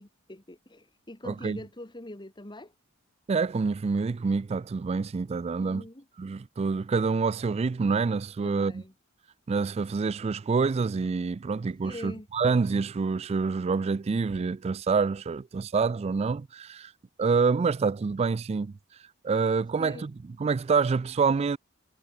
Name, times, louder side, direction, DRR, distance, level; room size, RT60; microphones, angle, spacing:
voice 1, 0.0-2.7 5.6-6.0 8.4-8.9 11.8-12.3 19.8-20.1, left 1 dB, 20° left, 1.9 m, -43 dB
voice 2, 1.2-1.6 3.3-5.8 6.2-8.8 9.5-16.9 17.2-18.7 19.2-21.6, right 4 dB, 30° right, 0.3 m, -27 dB
head